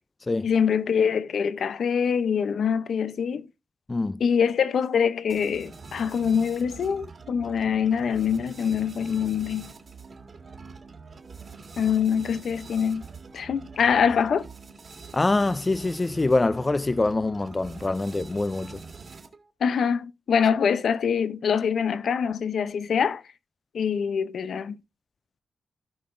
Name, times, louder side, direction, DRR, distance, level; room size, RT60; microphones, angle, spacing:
voice 1, 0.4-3.5 4.2-9.7 11.8-13.0 13.3-14.4 19.6-23.2 23.7-24.8, left 7 dB, 75° left, 0.6 m, -24 dB
voice 2, 3.9-4.2 15.1-18.8, left 2 dB, 20° left, 0.4 m, -24 dB
sound 1, 5.3-19.5, right 4 dB, 45° right, 1.8 m, -44 dB
17.0 x 5.8 x 2.5 m
wide cardioid pair, 145°, 0 cm